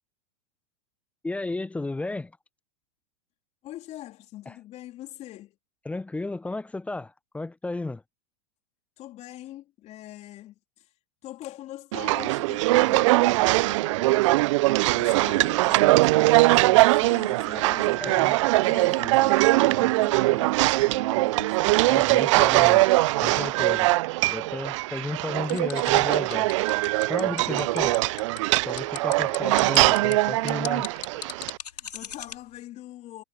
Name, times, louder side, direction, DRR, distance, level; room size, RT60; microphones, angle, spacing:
voice 1, 1.2-2.3 4.5-4.6 5.8-8.0 18.0-18.4 21.9-22.9 23.2-23.9 24.3-26.5 27.1-27.9 28.7-30.9 31.2-31.3, left 2 dB, 5° left, 0.8 m, -33 dB
voice 2, 3.6-5.6 9.0-10.9 11.2-14.1 14.4-22.4 27.5-27.8 31.7-33.2, left 14 dB, 35° left, 3.6 m, -44 dB
sound 1, 11.9-31.6, right 20 dB, 50° right, 0.8 m, -21 dB
sound 2, 25.4-32.4, left 7 dB, 75° left, 5.3 m, -38 dB
figure-of-eight pair, 100°, 20 cm